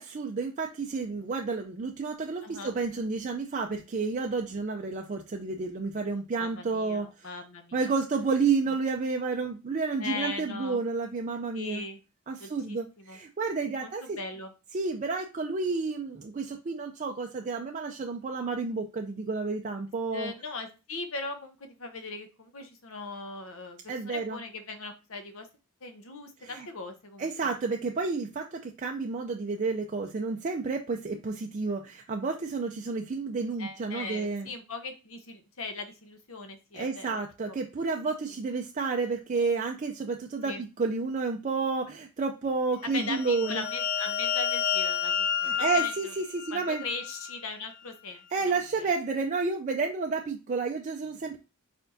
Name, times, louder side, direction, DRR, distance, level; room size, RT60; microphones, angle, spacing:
voice 1, 0.0-7.3 7.7-11.8 12.3-14.2 14.7-20.3 23.9-24.4 26.4-26.7 27.2-34.5 36.7-43.6 45.4-46.8 48.3-51.4, right 4 dB, 35° right, 2 dB, 0.4 m, -30 dB
voice 2, 2.4-2.7 6.4-7.9 10.0-10.8 11.5-12.0 12.4-13.2 13.8-14.5 20.1-25.5 25.8-27.5 33.6-37.1 37.5-37.6 40.4-40.6 42.8-46.1 46.5-48.8, left 3 dB, 65° left, 7 dB, 0.9 m, -39 dB
sound 1, 42.9-47.4, left 8 dB, 50° left, 0.3 m, -30 dB
4.5 x 4.4 x 2.6 m, 0.29 s
head